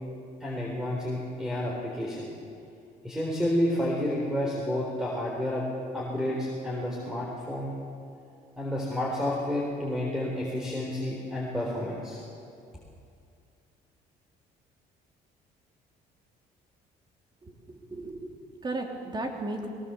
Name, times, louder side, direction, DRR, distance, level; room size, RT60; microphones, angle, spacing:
voice 1, 0.4-2.3 3.0-5.6 5.9-7.7 8.6-12.2, left 1 dB, 5° right, -3 dB, 4.0 m, -30 dB
voice 2, 17.4-19.7, right 2 dB, 25° right, 1 dB, 3.1 m, -35 dB
20.5 x 18.0 x 7.0 m, 2.4 s
cardioid pair, 110°, 17 cm